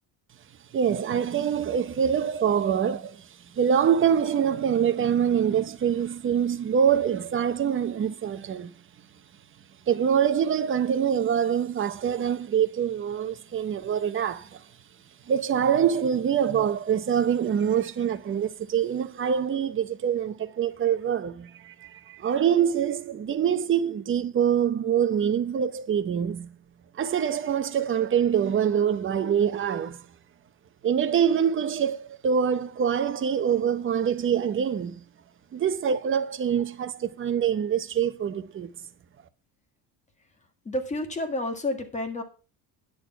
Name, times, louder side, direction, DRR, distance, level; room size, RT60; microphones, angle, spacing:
voice 1, 0.7-3.3 3.5-8.7 9.9-14.6 15.3-26.5 27.0-30.0 30.8-35.0 35.5-38.7, right 8 dB, 30° right, 0.8 m, -25 dB
voice 2, 40.6-42.2, left 1 dB, 15° left, 1.8 m, -30 dB
10.0 x 6.7 x 5.8 m
cardioid pair, 160°, 43 cm